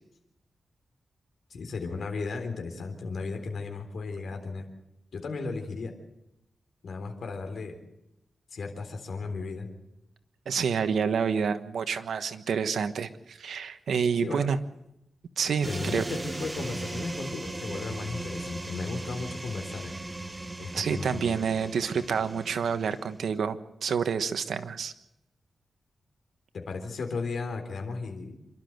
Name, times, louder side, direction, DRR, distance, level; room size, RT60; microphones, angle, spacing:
voice 1, 1.5-4.6 5.1-5.9 6.8-7.8 8.5-9.7 14.2-14.5 15.7-19.9 20.6-21.4 26.5-28.4, left 4 dB, 75° left, 4 dB, 3.6 m, -35 dB
voice 2, 10.5-14.6 15.4-16.0 20.7-24.9, right 6 dB, 90° right, 10 dB, 1.3 m, -28 dB
sound 1, 15.6-23.2, right 2 dB, 20° right, 1.6 m, -38 dB
27.0 x 12.5 x 8.0 m, 0.86 s
wide cardioid pair, 100°, 0 cm